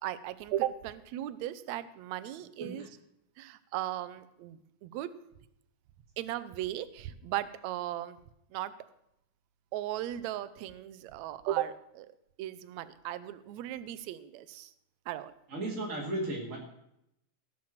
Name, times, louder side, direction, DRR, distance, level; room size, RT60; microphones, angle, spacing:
voice 1, 0.0-2.8 3.4-5.1 6.2-8.2 8.5-8.7 9.7-12.1 12.4-14.7 15.1-15.3, right 13 dB, 75° right, 15 dB, 1.8 m, -36 dB
voice 2, 15.5-16.6, right 1 dB, 25° right, -2 dB, 2.1 m, -35 dB
18.0 x 6.3 x 7.4 m, 0.80 s
omnidirectional pair, 3.8 m